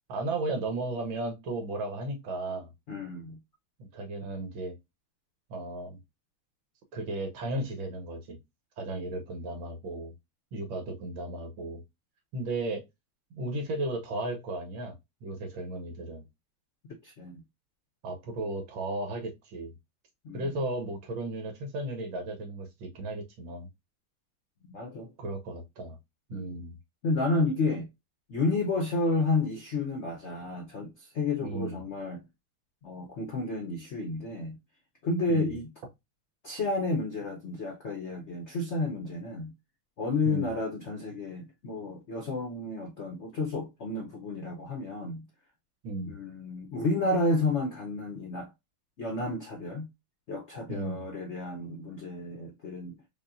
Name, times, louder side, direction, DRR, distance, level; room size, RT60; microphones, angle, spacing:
voice 1, 0.1-2.7 3.9-4.7 5.5-6.0 6.9-8.4 8.8-10.1 10.5-11.8 12.3-12.8 13.3-14.9 15.2-16.2 18.0-19.7 20.3-23.7 25.2-26.0 26.3-26.8 31.4-31.8 35.3-35.6 40.2-40.5 45.8-46.1 50.7-51.0, right 2 dB, 70° right, 1.7 m, -35 dB
voice 2, 2.9-3.4 17.0-17.4 20.2-20.5 24.7-25.1 26.3-26.6 27.0-27.9 28.3-32.2 32.8-34.6 35.0-35.7 36.4-39.5 40.0-45.3 46.0-48.5 49.0-49.9 50.3-53.0, left 2 dB, 80° left, 0.6 m, -31 dB
5.2 x 2.5 x 2.5 m
omnidirectional pair, 2.2 m